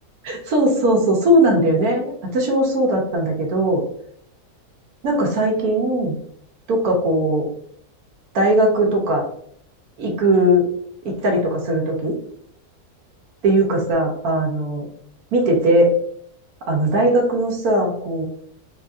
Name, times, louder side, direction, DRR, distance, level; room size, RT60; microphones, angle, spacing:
voice 1, 0.2-3.8 5.0-6.1 6.7-7.5 8.3-9.2 10.0-10.7 11.0-12.1 13.4-14.8 15.3-15.9 16.7-18.2, right 1 dB, 70° right, 0 dB, 1.3 m, -19 dB
3.6 x 2.6 x 2.4 m, 0.66 s
omnidirectional pair, 1.6 m